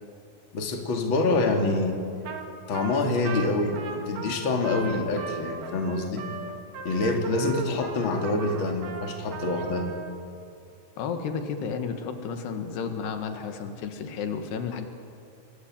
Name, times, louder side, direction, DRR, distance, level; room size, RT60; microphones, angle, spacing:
voice 1, 0.5-2.0 2.7-6.2 6.8-9.9, left 2 dB, 35° left, 2 dB, 2.8 m, -26 dB
Trumpet, 2.3-2.5 2.7-10.1, right 5 dB, 70° right, 3.7 m, -38 dB
voice 2, 11.0-14.9, left 6 dB, 80° left, 6 dB, 3.8 m, -32 dB
28.0 x 21.5 x 9.0 m, 2.5 s
omnidirectional pair, 4.7 m